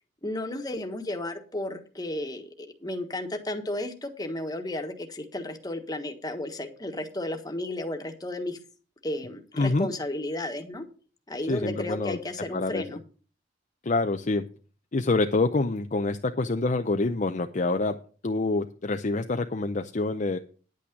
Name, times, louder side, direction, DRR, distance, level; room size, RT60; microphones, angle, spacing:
voice 1, 0.2-8.6 9.0-10.9 11.3-13.0, left 1 dB, 20° left, 5 dB, 1.4 m, -33 dB
voice 2, 9.6-9.9 11.5-12.2 12.5-12.8 13.8-14.4 14.9-18.0 18.2-20.4, left 3 dB, 40° left, 6 dB, 0.6 m, -26 dB
10.0 x 8.6 x 5.2 m, 0.38 s
head